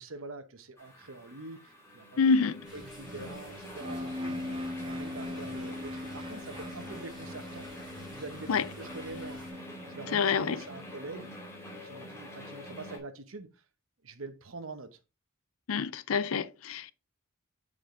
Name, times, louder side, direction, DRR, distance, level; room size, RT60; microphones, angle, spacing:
voice 1, 0.0-4.4 4.8-7.7 8.1-9.4 9.8-11.3 11.8-13.5 14.0-15.0, right 3 dB, 70° right, 1.0 m, -45 dB
sound 1, 0.8-13.0, left 1 dB, 10° left, 2.5 m, -46 dB
voice 2, 2.2-2.6 8.5-8.6 10.1-10.6 15.7-16.9, left 5 dB, 70° left, 0.5 m, -27 dB
sound 2, 2.6-9.5, equal, 5° right, 4.6 m, -52 dB
sound 3, 3.8-11.6, left 1 dB, 25° right, 0.9 m, -41 dB
7.3 x 4.9 x 3.7 m
head